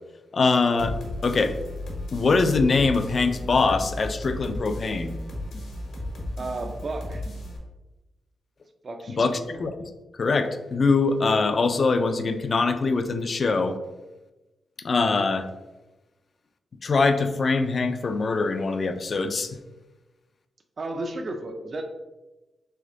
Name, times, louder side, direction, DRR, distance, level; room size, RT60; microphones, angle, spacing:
voice 1, 0.3-1.0 1.2-1.6 2.1-5.2 9.1-9.7 10.2-13.8 14.8-15.5 16.8-19.6, left 4 dB, 40° left, 9 dB, 0.3 m, -23 dB
sound 1, 0.8-7.6, left 1 dB, 80° left, 1.1 m, -34 dB
voice 2, 6.4-7.2 8.8-9.2 20.8-21.8, right 2 dB, 40° right, 5 dB, 0.4 m, -33 dB
3.6 x 3.3 x 3.7 m, 1.1 s
wide cardioid pair, 135°, 0 cm